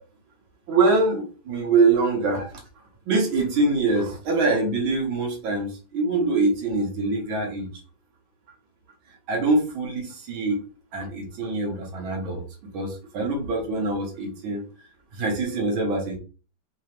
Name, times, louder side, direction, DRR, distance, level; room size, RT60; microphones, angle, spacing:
voice 1, 0.7-2.6 3.1-7.7 9.3-10.6 10.9-12.4 12.7-14.6 15.1-16.2, right 3 dB, 85° right, 1 dB, 1.9 m, -24 dB
4.0 x 2.9 x 3.2 m, 0.35 s
omnidirectional pair, 2.1 m